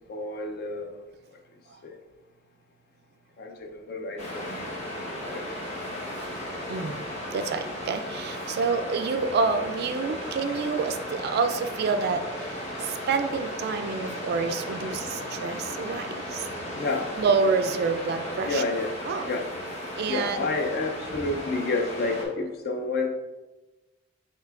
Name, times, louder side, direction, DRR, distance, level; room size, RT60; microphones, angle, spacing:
voice 1, 0.1-1.0 1.8-2.0 3.4-5.4 16.7-17.1 18.5-18.9 19.3-19.5 20.1-23.1, left 3 dB, 55° left, 4 dB, 0.5 m, -30 dB
Waves surf, 4.2-22.3, left 1 dB, 35° left, 1.0 m, -35 dB
voice 2, 6.7-7.0 7.3-16.5 17.2-18.6 19.0-19.3 20.0-20.4, right 4 dB, 55° right, 10 dB, 0.3 m, -28 dB
6.5 x 2.9 x 2.4 m, 1.1 s
head